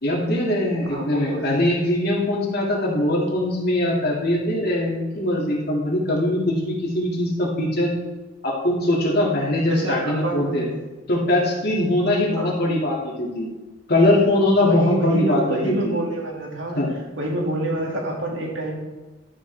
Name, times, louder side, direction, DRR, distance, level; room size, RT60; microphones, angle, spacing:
voice 1, 0.0-7.9 8.4-10.7 11.1-13.5 13.9-16.0 16.7-16.9, left 1 dB, 55° left, -3 dB, 2.5 m, -21 dB
voice 2, 0.9-1.6 9.7-10.7 12.4-12.5 14.6-16.8 17.2-18.8, right 1 dB, 80° right, -1 dB, 2.3 m, -27 dB
12.0 x 6.6 x 3.5 m, 1.2 s
head